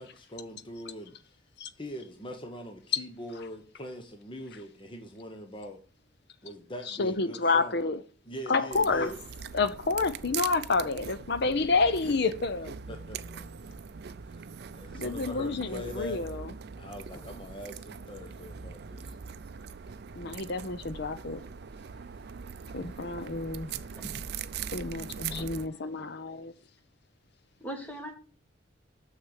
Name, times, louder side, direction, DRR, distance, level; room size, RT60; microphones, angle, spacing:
voice 1, 0.0-1.4 1.8-5.8 6.4-7.8 8.2-9.2 12.9-13.8 14.2-16.2 16.8-19.2, equal, 25° left, 1.0 m, -42 dB
voice 2, 6.9-8.0 8.5-9.1 9.5-12.7 14.9-16.5 20.2-21.4 22.7-23.7 24.7-26.5, left 3 dB, 60° left, 0.8 m, -29 dB
sound 1, 8.7-25.7, right 7 dB, 55° right, 0.4 m, -41 dB
voice 3, 23.9-24.3 25.3-25.5 27.6-28.1, equal, 10° left, 1.6 m, -41 dB
6.6 x 6.4 x 6.5 m
head